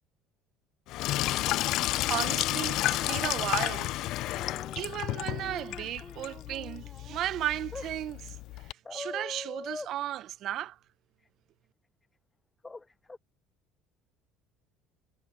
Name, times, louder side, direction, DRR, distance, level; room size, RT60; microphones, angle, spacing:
Sink (filling or washing), 0.9-8.7, left 16 dB, 65° left, 0.6 m, -32 dB
voice 1, 2.1-4.0 4.8-10.8, right 13 dB, 60° right, 0.8 m, -35 dB
sound 1, 2.7-3.7 4.3-4.9 5.3-7.2 7.7-7.9 8.8-9.9 12.6-12.8 13.1-13.2, left 3 dB, 15° left, 0.5 m, -43 dB
supercardioid pair, 90°, 0 cm